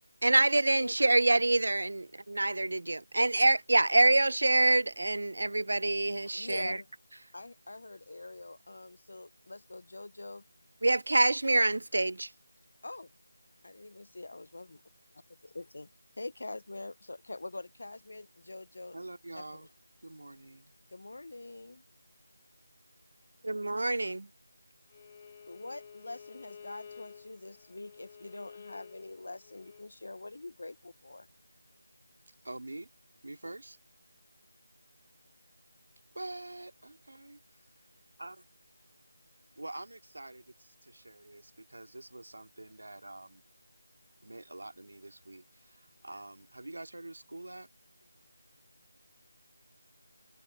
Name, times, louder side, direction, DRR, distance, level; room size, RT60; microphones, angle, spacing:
voice 1, 0.2-6.8 10.8-12.3 23.4-24.3, right 2 dB, 60° right, 0.4 m, -26 dB
voice 2, 0.8-1.3 6.3-6.9 7.3-10.4 12.8-13.1 13.6-14.8 15.1-15.9 16.2-19.0 19.3-19.7 20.9-21.8 25.5-31.3, left 2 dB, 55° left, 0.4 m, -44 dB
voice 3, 18.9-19.7 20.0-20.7 32.4-32.9 33.2-33.8 36.1-37.4 38.2-38.5 39.6-43.4 44.2-47.7, right 2 dB, 85° right, 2.2 m, -46 dB
Bowed string instrument, 24.9-29.9, left 6 dB, 20° left, 1.2 m, -51 dB
figure-of-eight pair, 180°, 0 cm